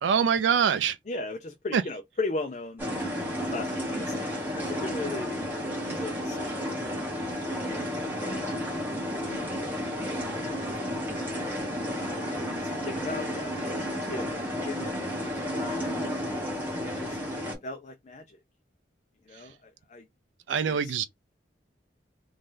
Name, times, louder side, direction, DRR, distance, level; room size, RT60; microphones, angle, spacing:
voice 1, 0.0-1.0 1.7-1.8 20.5-21.0, right 7 dB, 90° right, 0.4 m, -24 dB
voice 2, 1.1-2.8 3.5-5.4 6.0-7.0 7.5-8.4 9.3-9.4 10.8-11.0 12.1-14.4 14.6-14.9 15.2-15.9 16.9-17.2 17.6-18.4 19.3-20.1 20.6-21.0, left 3 dB, 40° left, 0.4 m, -38 dB
sound 1, 2.8-17.5, equal, 10° right, 1.5 m, -32 dB
3.1 x 2.7 x 3.7 m
head